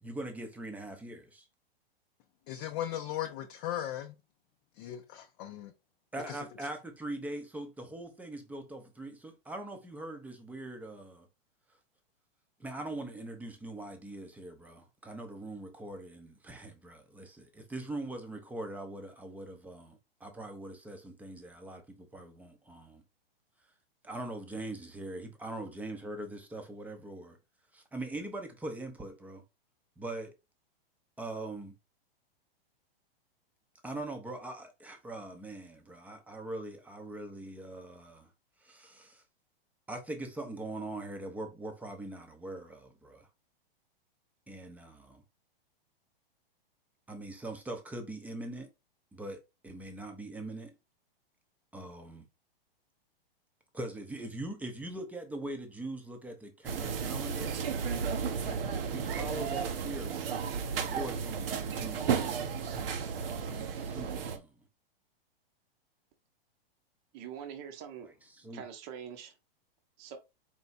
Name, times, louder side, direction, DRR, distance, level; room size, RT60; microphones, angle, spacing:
voice 1, 0.0-1.5 6.1-11.3 12.6-23.0 24.0-27.4 27.7-29.4 30.0-30.3 31.2-31.8 33.8-38.3 38.6-39.2 39.9-43.3 44.5-45.2 47.1-48.7 49.1-50.7 51.7-52.3 53.7-57.6 58.2-60.3 60.8-62.4 63.4-64.5 68.3-68.6, right 1 dB, 5° right, 0.7 m, -42 dB
voice 2, 2.5-4.1 4.8-5.7 6.3-6.4, left 12 dB, 35° left, 0.5 m, -37 dB
sound 1, 56.6-64.4, right 6 dB, 70° right, 0.9 m, -33 dB
voice 3, 67.1-68.1 68.5-69.3 70.0-70.2, right 8 dB, 35° right, 0.8 m, -44 dB
4.5 x 2.3 x 4.0 m
hypercardioid pair, 130°, 30 cm